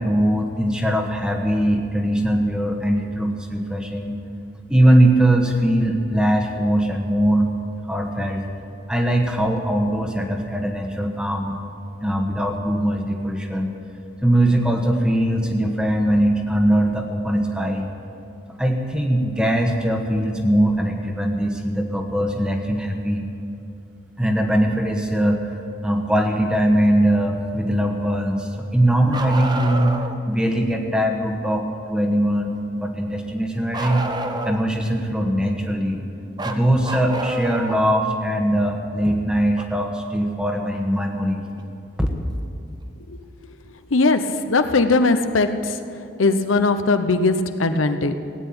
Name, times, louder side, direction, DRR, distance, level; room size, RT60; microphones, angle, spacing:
voice 1, 0.0-4.2 4.7-7.5 7.8-8.4 8.9-11.6 12.0-13.7 14.2-17.9 18.6-23.3 24.2-25.4 25.8-29.9 30.3-34.0 34.4-36.0 36.4-41.4 42.0-42.1, right 1 dB, 5° right, 3 dB, 1.2 m, -21 dB
Bark, 29.1-30.2 33.7-34.8 36.4-37.9 39.6-39.7 41.6-41.7 42.8-42.9, right 2 dB, 20° right, 0.7 m, -28 dB
voice 2, 43.9-45.8 46.2-48.2, left 3 dB, 90° left, 9 dB, 0.8 m, -19 dB
17.0 x 9.2 x 8.8 m, 2.6 s
head